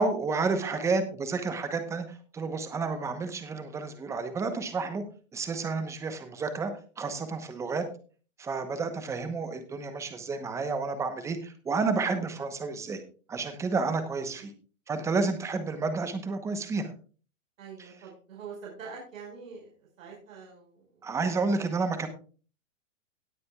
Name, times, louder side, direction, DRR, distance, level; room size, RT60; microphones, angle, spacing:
voice 1, 0.0-5.0 5.3-7.9 8.4-13.0 13.3-14.5 14.9-16.9 17.8-17.9 21.0-22.1, right 4 dB, 5° right, 9 dB, 1.0 m, -30 dB
voice 2, 17.6-19.7 20.0-20.8, right 5 dB, 70° right, -2 dB, 5.4 m, -44 dB
18.0 x 8.6 x 2.4 m, 0.37 s
hypercardioid pair, 155°, 40 cm